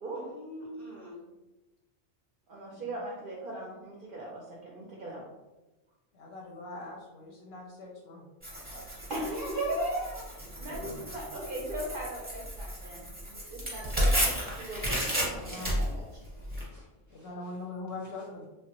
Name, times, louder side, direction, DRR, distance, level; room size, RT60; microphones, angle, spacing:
voice 1, 0.2-1.2 9.2-10.2 16.5-17.5, left 1 dB, 20° left, -5 dB, 0.6 m, -43 dB
voice 2, 2.5-5.2 9.1-10.0 10.4-13.0 13.5-16.0, right 1 dB, 60° right, -3 dB, 0.6 m, -38 dB
voice 3, 6.1-8.3 15.2-15.8 17.1-18.5, left 2 dB, 65° left, -1 dB, 0.7 m, -42 dB
Tearing, 8.4-16.6, equal, 10° right, 0.8 m, -33 dB
3.3 x 2.1 x 2.8 m, 1.1 s
omnidirectional pair, 1.3 m